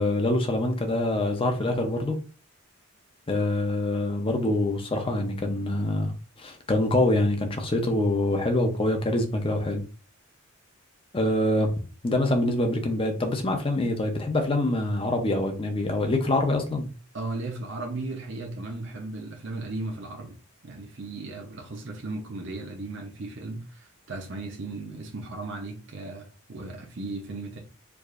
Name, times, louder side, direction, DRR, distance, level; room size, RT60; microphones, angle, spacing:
voice 1, 0.0-2.2 3.3-6.1 6.4-9.8 11.1-16.9, left 1 dB, 25° left, 0.6 m, -25 dB
voice 2, 17.1-20.4 20.6-27.6, right 2 dB, 55° right, 0.7 m, -36 dB
4.6 x 2.5 x 2.5 m
head